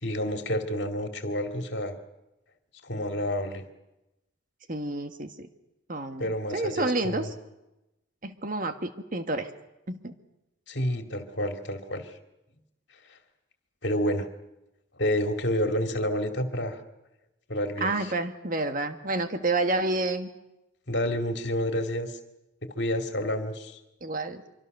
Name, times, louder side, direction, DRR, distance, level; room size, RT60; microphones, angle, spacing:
voice 1, 0.0-2.0 2.8-3.6 6.2-7.3 10.7-12.1 13.8-14.3 15.0-16.8 17.5-18.1 20.9-22.2 22.8-23.8, equal, 60° left, 5 dB, 2.5 m, -29 dB
voice 2, 4.7-5.5 5.9-7.3 8.2-9.5 9.9-10.1 17.8-20.3 24.0-24.4, right 2 dB, 40° right, 7 dB, 1.5 m, -29 dB
25.5 x 24.5 x 6.7 m, 0.95 s
head